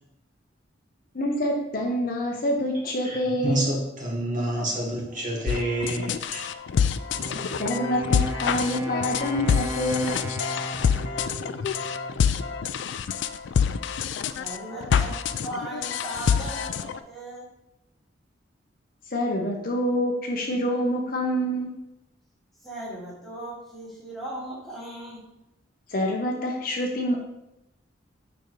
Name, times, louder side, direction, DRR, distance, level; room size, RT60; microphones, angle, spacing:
voice 1, 1.1-3.7 7.6-10.2 19.1-21.7 25.9-27.2, equal, 50° left, 0 dB, 0.7 m, -26 dB
voice 2, 3.0-6.5, right 1 dB, 40° right, -4 dB, 1.9 m, -28 dB
sound 1, 5.5-17.0, left 7 dB, 70° left, 0.3 m, -26 dB
Wind instrument woodwind instrument, 7.0-12.8, right 1 dB, 15° right, 0.5 m, -37 dB
voice 3, 14.3-17.5 22.6-25.2, right 1 dB, ahead, -7 dB, 2.1 m, -37 dB
6.9 x 5.0 x 3.2 m, 0.88 s
head